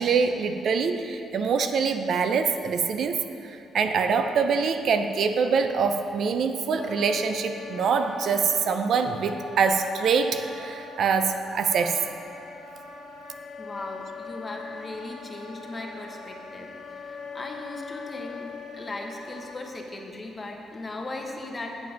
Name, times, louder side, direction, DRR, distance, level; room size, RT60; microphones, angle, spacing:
voice 1, 0.0-12.0, right 5 dB, 65° right, 7 dB, 0.5 m, -24 dB
Wind instrument woodwind instrument, 6.7-19.6, left 5 dB, 65° left, 0.9 m, -41 dB
voice 2, 13.6-21.9, left 2 dB, 25° left, 1 dB, 1.1 m, -38 dB
7.6 x 7.3 x 5.1 m, 2.6 s
cardioid pair, 90°, 0 cm